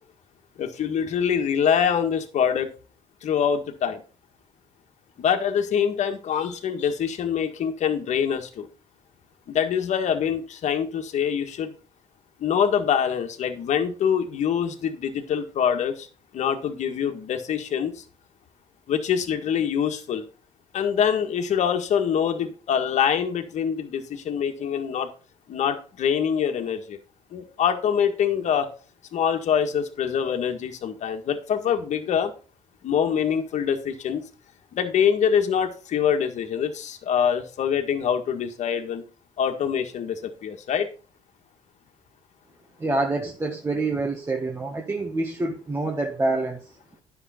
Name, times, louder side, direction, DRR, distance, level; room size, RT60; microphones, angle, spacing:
voice 1, 0.6-2.7 3.2-4.0 5.2-8.7 9.5-11.7 12.4-16.1 16.3-18.0 18.9-20.2 20.7-25.1 25.5-27.0 27.3-28.7 29.1-32.3 32.8-34.2 34.7-39.0 39.4-40.9, left 8 dB, 60° left, 6 dB, 1.7 m, -24 dB
voice 2, 42.8-46.7, right 2 dB, 20° right, 1 dB, 1.7 m, -26 dB
10.0 x 7.0 x 4.3 m, 0.37 s
supercardioid pair, 70°, 14 cm